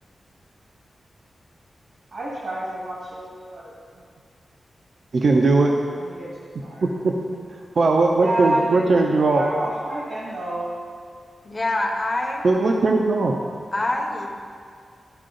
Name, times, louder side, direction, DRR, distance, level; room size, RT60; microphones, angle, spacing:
voice 1, 2.1-3.7 6.0-6.3 6.6-6.9 8.2-9.0 9.3-10.7, right 1 dB, 80° right, -6 dB, 1.8 m, -29 dB
voice 2, 5.1-5.7 6.8-7.2 7.8-9.4 12.4-13.3, right 3 dB, 60° right, 1 dB, 0.6 m, -19 dB
voice 3, 11.4-12.5 13.7-14.3, left 2 dB, 25° left, 1 dB, 0.9 m, -25 dB
12.5 x 4.7 x 3.9 m, 2.2 s
wide cardioid pair, 120°, 0 cm